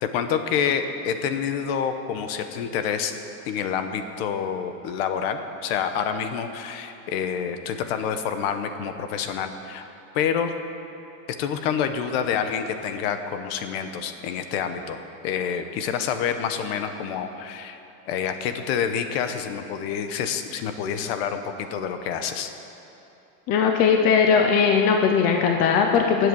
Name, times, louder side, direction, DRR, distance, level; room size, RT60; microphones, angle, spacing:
voice 1, 0.0-3.1 3.5-9.8 10.1-10.5 11.4-15.0 15.2-17.8 18.1-22.5, left 7 dB, 50° left, 8 dB, 1.0 m, -27 dB
voice 2, 23.5-26.3, left 6 dB, 20° left, 3 dB, 0.4 m, -19 dB
20.5 x 8.1 x 6.3 m, 2.9 s
supercardioid pair, 170°, 40 cm